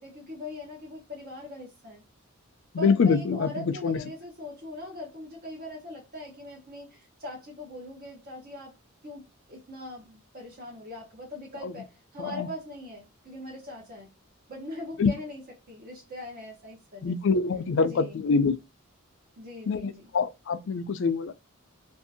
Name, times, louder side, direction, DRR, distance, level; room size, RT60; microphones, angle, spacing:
voice 1, 0.0-2.0 2.8-8.7 9.0-14.1 14.5-17.2 17.8-18.2 19.4-20.1, left 1 dB, 45° right, 0.8 m, -41 dB
voice 2, 2.7-4.0 11.6-11.7 12.2-12.5 15.0-15.1 17.0-18.5 19.7-21.3, left 5 dB, 60° left, 0.4 m, -25 dB
2.6 x 2.5 x 2.6 m
head